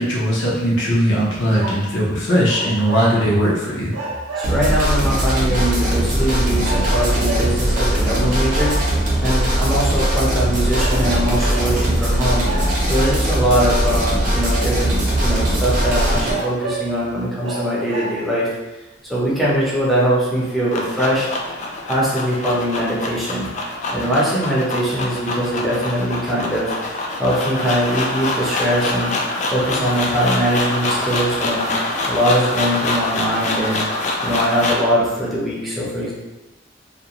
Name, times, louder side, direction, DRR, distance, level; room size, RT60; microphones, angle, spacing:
voice 1, 0.0-3.9, equal, 70° left, -6 dB, 0.7 m, -19 dB
sound 1, 1.4-2.0 2.4-3.5 3.9-4.8 5.5-5.6 6.6-7.7 8.5-9.0 10.0-10.3 10.7-11.8 12.4-13.0 13.9-14.0 14.7-14.8 15.1-15.2 15.9-17.0 17.4-18.4 19.2-19.3, right 3 dB, 80° right, 0.5 m, -30 dB
voice 2, 4.4-8.8 9.2-12.5 12.9-18.5 19.1-21.3 21.8-23.5 23.9-29.1 29.5-31.7 32.1-33.8 34.2-36.1, equal, ahead, -7 dB, 0.6 m, -21 dB
sound 2, 4.4-16.3, right 1 dB, 45° right, 0.7 m, -19 dB
sound 3, 20.3-34.9, left 2 dB, 40° left, 0.3 m, -25 dB
2.5 x 2.2 x 2.9 m, 1.1 s
head